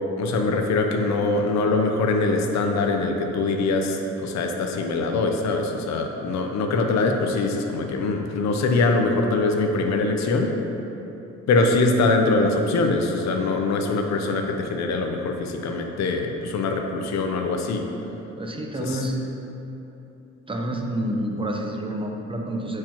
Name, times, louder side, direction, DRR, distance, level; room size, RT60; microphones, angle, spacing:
voice 1, 0.2-10.5 11.5-17.9 18.8-19.0, left 3 dB, 65° left, 3 dB, 0.7 m, -23 dB
voice 2, 18.4-19.2 20.5-22.8, right 1 dB, 15° right, 1 dB, 0.8 m, -28 dB
8.6 x 4.7 x 3.0 m, 3.0 s
cardioid pair, 90°, 30 cm